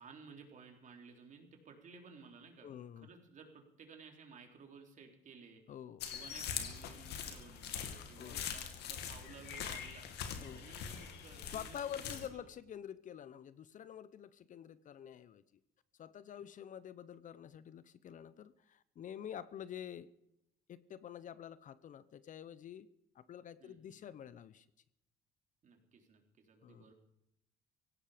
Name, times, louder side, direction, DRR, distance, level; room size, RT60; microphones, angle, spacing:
voice 1, 0.0-2.7 3.0-5.6 6.1-10.1 10.5-12.5 23.6-24.0 25.6-26.9, right 5 dB, 50° right, 3 dB, 3.7 m, -56 dB
voice 2, 2.6-3.1 5.7-6.0 8.2-8.5 10.4-10.7 11.4-15.4 16.0-20.1 20.7-22.9 23.1-24.7 26.6-26.9, left 9 dB, 50° left, 17 dB, 0.8 m, -48 dB
sound 1, 6.0-12.3, left 8 dB, 80° left, 2.2 m, -43 dB
17.5 x 16.0 x 5.1 m, 0.82 s
cardioid pair, 110°, 17 cm